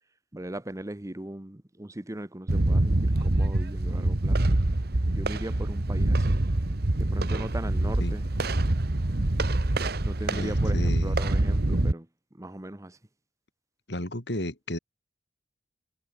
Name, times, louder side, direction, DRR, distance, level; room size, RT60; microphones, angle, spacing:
voice 1, 0.3-4.4 5.1-6.4 7.0-8.2 10.0-12.1 12.3-13.0, right 1 dB, 15° right, 0.9 m, -38 dB
sound 1, 2.5-11.9, right 1 dB, 55° right, 1.3 m, -25 dB
voice 2, 10.3-11.2 13.9-14.8, left 1 dB, 65° left, 4.4 m, -33 dB
head